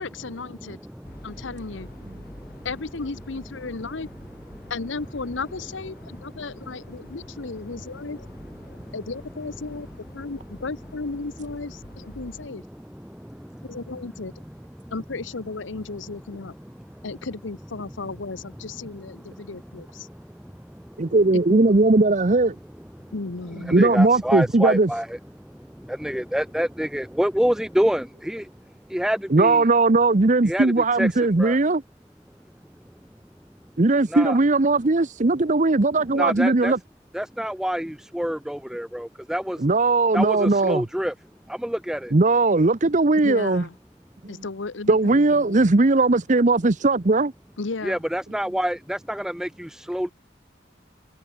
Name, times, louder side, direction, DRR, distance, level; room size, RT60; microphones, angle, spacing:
voice 1, 0.0-0.8 1.2-1.9 2.6-4.1 4.7-8.2 8.9-9.9 10.1-12.6 13.6-14.3 14.9-16.6 17.0-20.1 21.3-21.6 23.1-23.9 36.1-36.4 43.2-43.7 44.3-45.6 47.6-48.0, left 3 dB, 80° left, 0.9 m, -34 dB
voice 2, 0.7-1.4 2.1-2.7 4.5-4.7 6.3-7.1 7.7-7.8 8.6-8.9 12.5-13.7 14.8-14.9 16.9-17.0 19.3-19.4 20.0-21.1 23.0-23.1 23.7-28.5 28.9-29.7 30.5-31.1 31.4-31.6 34.1-34.4 36.2-36.7 37.1-39.6 40.1-41.1 41.5-42.1 47.8-50.1, equal, 5° right, 0.6 m, -28 dB
sound 1, 1.0-12.5, left 1 dB, 50° left, 3.4 m, -46 dB
voice 3, 21.0-22.5 23.6-24.9 29.3-31.8 33.8-36.8 39.6-40.8 42.1-43.6 44.9-47.3, right 3 dB, 40° right, 0.8 m, -19 dB
head